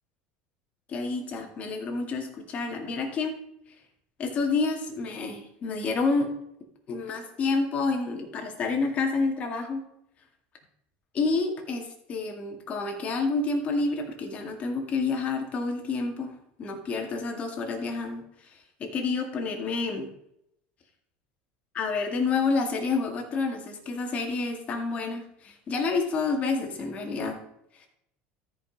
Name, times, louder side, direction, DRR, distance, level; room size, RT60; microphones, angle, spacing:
voice 1, 0.9-3.4 4.2-6.3 6.9-9.8 11.1-16.3 16.6-20.1 21.7-27.4 27.8-27.9, left 4 dB, 30° left, 2 dB, 2.0 m, -29 dB
13.5 x 5.3 x 5.2 m, 0.77 s
cardioid pair, 155°, 5 cm